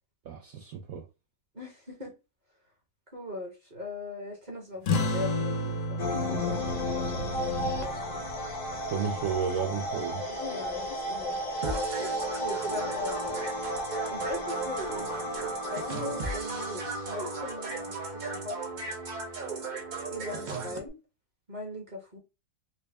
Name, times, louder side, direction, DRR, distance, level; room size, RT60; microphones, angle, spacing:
voice 1, 0.3-1.0 7.6-7.8 8.9-10.2, right 6 dB, 70° right, 0.9 m, -32 dB
voice 2, 1.5-2.1 3.1-7.2 7.8-8.2 10.3-11.4 12.4-13.4 14.1-18.9 20.1-20.9 21.5-22.2, left 2 dB, 30° right, 0.9 m, -40 dB
sound 1, 4.8-9.9, left 2 dB, 65° left, 0.9 m, -33 dB
sound 2, 6.0-19.4, left 1 dB, 40° left, 0.6 m, -34 dB
sound 3, 11.6-20.8, right 3 dB, 85° right, 0.4 m, -35 dB
4.1 x 2.1 x 3.4 m
omnidirectional pair, 1.9 m